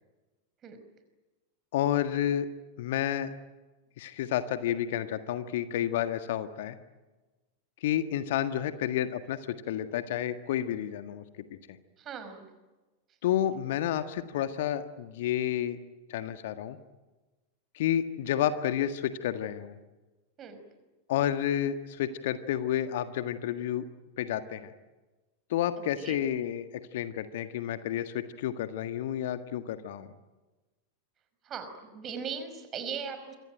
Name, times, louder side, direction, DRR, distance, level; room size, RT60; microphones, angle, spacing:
voice 1, 1.7-2.5 2.8-3.3 4.0-6.8 7.8-11.6 13.2-15.8 16.1-16.8 17.7-19.8 21.1-23.8 24.2-24.7 25.5-30.1, left 11 dB, 55° left, 10 dB, 1.6 m, -30 dB
voice 2, 12.0-12.5 13.1-13.2 20.4-20.6 25.8-26.2 31.4-33.4, right 6 dB, 30° right, 9 dB, 5.4 m, -39 dB
27.5 x 24.0 x 9.1 m, 1.2 s
figure-of-eight pair, 90°, 0 cm